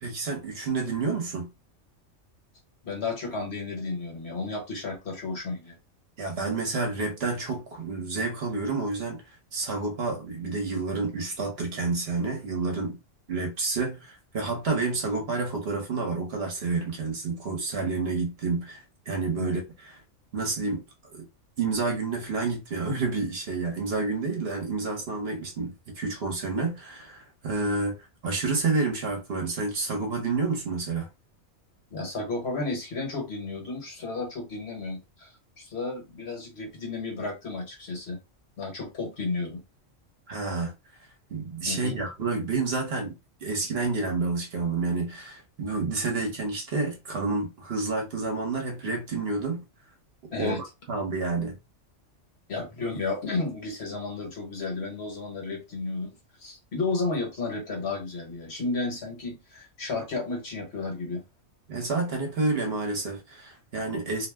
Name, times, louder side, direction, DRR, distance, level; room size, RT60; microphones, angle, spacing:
voice 1, 0.0-1.5 6.2-9.2 9.5-13.0 13.3-19.9 20.3-20.8 21.1-21.3 21.6-28.0 28.2-31.1 40.3-40.7 41.3-43.1 43.4-49.6 50.4-51.6 61.7-64.3, right 3 dB, 55° right, 1.0 m, -29 dB
voice 2, 2.8-5.8 19.4-19.5 31.9-35.3 35.6-38.2 38.6-39.6 41.7-42.0 50.3-50.6 52.5-56.1 56.4-61.2, left 3 dB, 60° left, 1.3 m, -32 dB
2.7 x 2.0 x 3.4 m
omnidirectional pair, 1.3 m